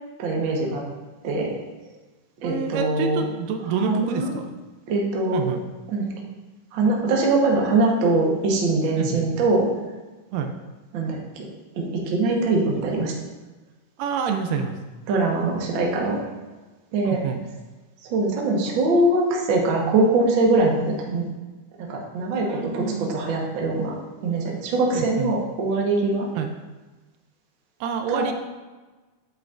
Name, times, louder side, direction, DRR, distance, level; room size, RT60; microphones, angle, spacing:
voice 1, 0.2-0.8 1.2-1.5 2.4-3.2 3.9-4.3 4.9-5.4 5.9-6.1 6.7-9.7 10.9-11.2 12.1-13.1 15.1-16.2 16.9-17.2 18.0-21.2 21.9-23.9 24.2-26.3 28.1-28.3, right 2 dB, 55° right, -1 dB, 1.4 m, -22 dB
voice 2, 2.4-4.6 5.3-5.6 8.9-9.3 10.3-10.5 14.0-14.7 17.0-17.4 22.5-23.2 24.9-25.3 26.3-26.5 27.8-28.3, right 6 dB, 80° right, 5 dB, 2.2 m, -27 dB
8.7 x 8.2 x 2.5 m, 1.2 s
omnidirectional pair, 3.9 m